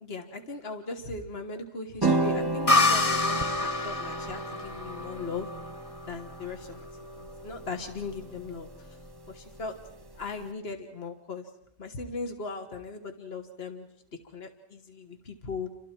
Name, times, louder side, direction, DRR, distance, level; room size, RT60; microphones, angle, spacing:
voice 1, 0.0-5.5 6.1-6.9 7.2-8.7 9.3-9.7 10.2-11.5 11.8-13.9 14.3-15.7, left 4 dB, 70° left, 6 dB, 1.8 m, -38 dB
sound 1, 2.0-10.4, right 2 dB, 25° right, 1.0 m, -34 dB
sound 2, 2.7-6.2, left 2 dB, 35° left, 1.0 m, -27 dB
29.5 x 25.0 x 4.5 m, 0.77 s
omnidirectional pair, 1.1 m